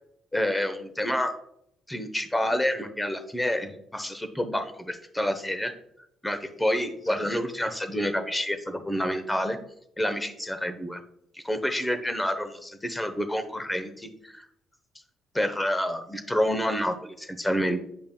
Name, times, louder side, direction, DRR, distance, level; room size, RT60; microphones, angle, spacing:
voice 1, 0.3-1.3 1.9-5.7 6.2-9.6 10.0-11.0 11.3-14.5 15.3-17.8, equal, 10° left, 9 dB, 0.9 m, -28 dB
8.9 x 5.2 x 2.3 m, 0.75 s
supercardioid pair, 75°, 0 cm